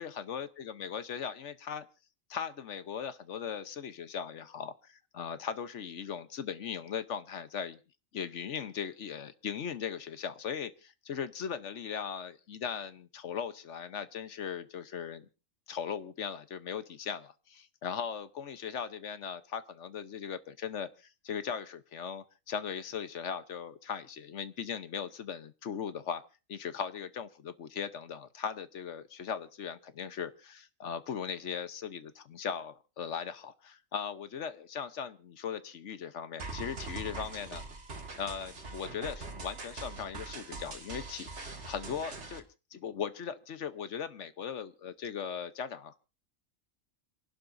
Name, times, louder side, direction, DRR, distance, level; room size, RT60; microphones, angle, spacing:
voice 1, 0.0-1.9 2.3-7.8 8.1-15.3 15.7-26.2 26.5-37.6 38.2-42.4 42.7-46.0, left 7 dB, 65° left, 12 dB, 1.2 m, -38 dB
sound 1, 36.4-42.4, right 3 dB, 60° right, 2.1 m, -42 dB
28.0 x 12.0 x 2.6 m, 0.32 s
omnidirectional pair, 1.4 m